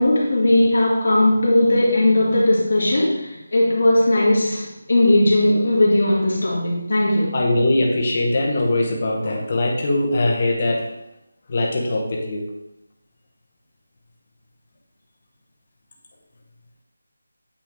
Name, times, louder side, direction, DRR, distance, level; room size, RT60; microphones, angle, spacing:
voice 1, 0.0-7.4, left 1 dB, 50° left, -4 dB, 1.9 m, -18 dB
voice 2, 7.3-10.9 11.5-12.4, left 2 dB, 25° left, -2 dB, 0.9 m, -21 dB
8.4 x 3.6 x 3.4 m, 0.88 s
figure-of-eight pair, 180°, 0 cm